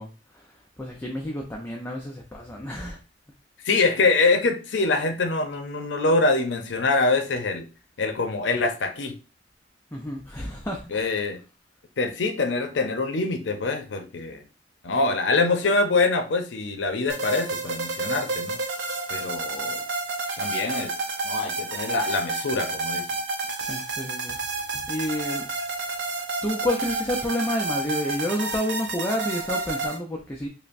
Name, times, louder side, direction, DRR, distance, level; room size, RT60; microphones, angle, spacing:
voice 1, 0.0-3.0 9.9-11.2 23.6-24.4 24.7-25.5 26.4-30.5, equal, 15° left, 0 dB, 0.5 m, -30 dB
voice 2, 3.6-7.7 8.0-9.1 10.9-11.4 12.0-14.4 14.8-18.6 19.1-19.8 20.4-20.9 21.2-23.1, left 3 dB, 80° left, 6 dB, 0.6 m, -24 dB
sound 1, 17.1-30.0, right 3 dB, 75° right, 0.6 m, -30 dB
5.4 x 2.1 x 2.5 m, 0.33 s
head